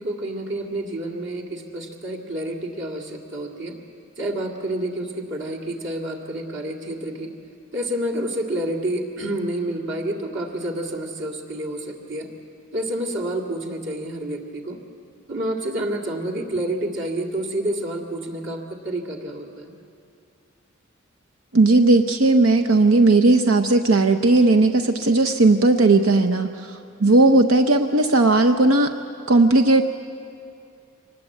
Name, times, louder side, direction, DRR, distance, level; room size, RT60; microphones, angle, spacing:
voice 1, 0.0-3.8 4.2-7.3 7.7-12.3 12.7-14.8 15.3-19.7, right 1 dB, 60° right, -1 dB, 2.2 m, -29 dB
voice 2, 21.5-28.9 29.3-29.8, right 2 dB, 75° right, 7 dB, 0.8 m, -16 dB
24.5 x 20.0 x 8.4 m, 2.5 s
head